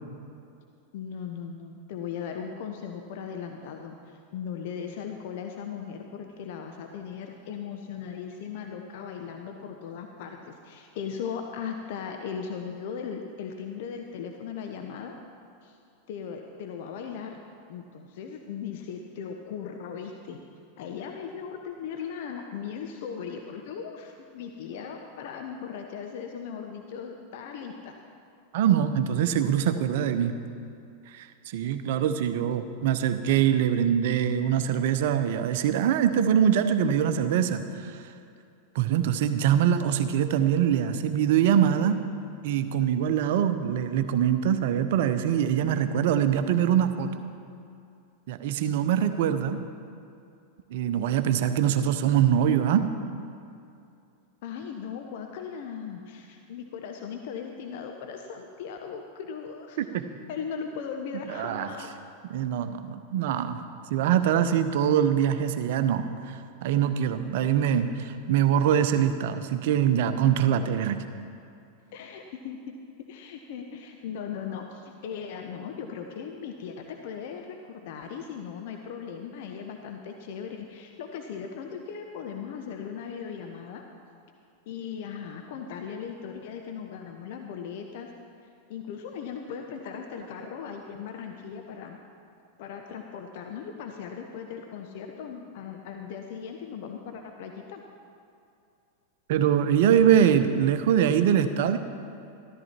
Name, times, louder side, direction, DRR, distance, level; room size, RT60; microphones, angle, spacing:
voice 1, 0.9-15.2 15.6-15.8 16.1-17.4 17.7-20.4 20.8-27.9 54.4-61.9 71.9-72.6 73.1-83.8 84.7-88.1 88.7-92.0 92.6-97.8, left 7 dB, 50° left, 4 dB, 0.9 m, -38 dB
voice 2, 28.5-30.3 31.1-38.0 38.7-42.0 42.4-47.1 48.3-49.6 50.7-52.9 59.8-60.0 61.3-61.7 62.3-63.6 63.9-66.3 66.6-71.0 99.3-101.8, right 9 dB, 50° right, 10 dB, 0.7 m, -23 dB
13.5 x 13.5 x 4.4 m, 2.6 s
figure-of-eight pair, 90°, 0 cm